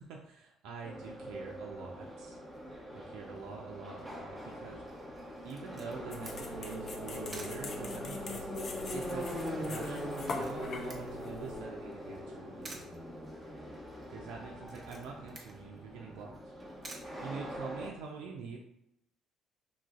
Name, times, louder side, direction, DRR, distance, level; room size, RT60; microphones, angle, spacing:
voice 1, 0.0-2.4 2.9-4.8 5.4-12.8 14.1-16.5 17.2-18.6, right 5 dB, 70° right, 0 dB, 0.4 m, -45 dB
Subway metro underground, 0.8-17.9, equal, 10° right, 0.9 m, -42 dB
Camera, 5.5-18.0, right 2 dB, 40° right, 0.8 m, -54 dB
sound 1, 6.1-11.6, left 3 dB, 50° left, 0.5 m, -44 dB
3.6 x 2.4 x 2.3 m, 0.80 s
hypercardioid pair, 55°, 0 cm